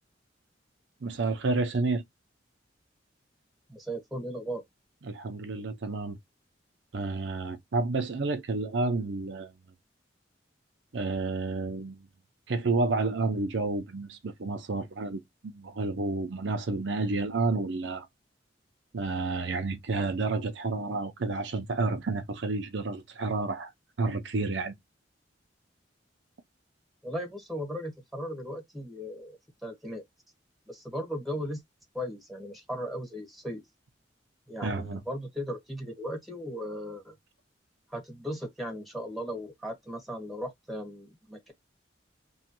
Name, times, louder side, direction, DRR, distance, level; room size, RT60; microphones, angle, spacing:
voice 1, 1.0-2.0 5.1-6.2 6.9-9.5 10.9-12.1 12.5-18.1 18.9-23.7 24.0-24.7 34.6-35.0, right 3 dB, 75° right, 0.6 m, -30 dB
voice 2, 3.7-4.6 27.0-30.0 30.7-31.6 31.9-33.6 34.5-37.1 37.9-41.5, equal, ahead, 1.3 m, -37 dB
3.1 x 2.2 x 2.9 m
head